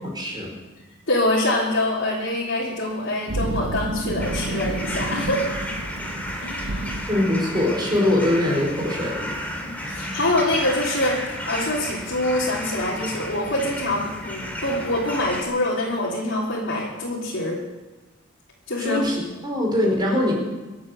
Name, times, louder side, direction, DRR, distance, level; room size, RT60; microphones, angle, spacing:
voice 1, 0.1-0.5 7.1-9.3 18.8-20.3, left 1 dB, 20° right, -1 dB, 4.7 m, -22 dB
voice 2, 1.1-5.5 6.4-7.0 9.6-11.2 11.5-17.6 18.7-19.1, left 1 dB, 60° left, -7 dB, 3.4 m, -25 dB
sound 1, 3.3-7.7, right 2 dB, 70° right, 0.8 m, -30 dB
sound 2, 4.2-15.4, equal, 10° left, 2.7 m, -32 dB
24.5 x 8.6 x 6.8 m, 1.2 s
head